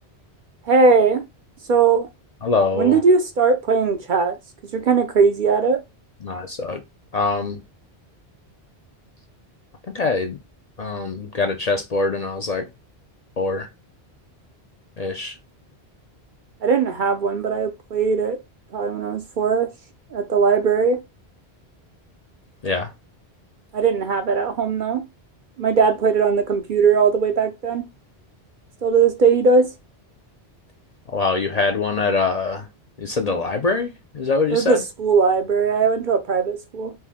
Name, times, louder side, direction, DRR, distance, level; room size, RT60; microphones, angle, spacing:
voice 1, 0.7-1.2 1.7-2.1 2.7-4.4 4.6-5.8 16.6-18.4 18.7-19.7 20.1-21.0 23.7-25.0 25.6-27.9 28.8-29.7 34.5-36.9, right 5 dB, 55° right, 0.6 m, -19 dB
voice 2, 2.4-3.0 6.2-6.8 7.1-7.6 9.9-10.4 10.8-12.7 13.4-13.7 15.0-15.3 22.6-22.9 31.1-32.7 33.0-34.8, left 3 dB, 50° left, 0.5 m, -23 dB
4.3 x 2.6 x 3.5 m
omnidirectional pair, 1.1 m